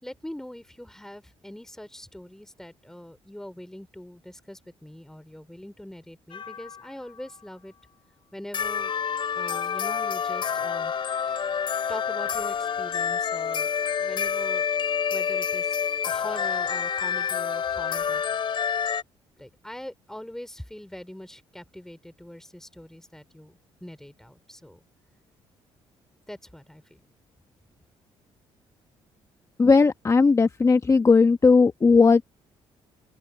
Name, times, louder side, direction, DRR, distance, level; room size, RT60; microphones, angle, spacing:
voice 1, 0.0-7.7 8.3-8.9 9.4-10.9 11.3-11.5 11.9-13.7 14.0-14.6 15.1-15.8 16.0-18.2 18.7-18.8 19.4-24.8 26.3-27.0, left 1 dB, 5° left, 3.6 m, -42 dB
sound 1, 6.3-6.9 8.5-19.0, left 7 dB, 50° left, 4.7 m, -28 dB
voice 2, 29.6-32.2, left 4 dB, 30° left, 1.2 m, -17 dB
open air
cardioid pair, 80°, 11 cm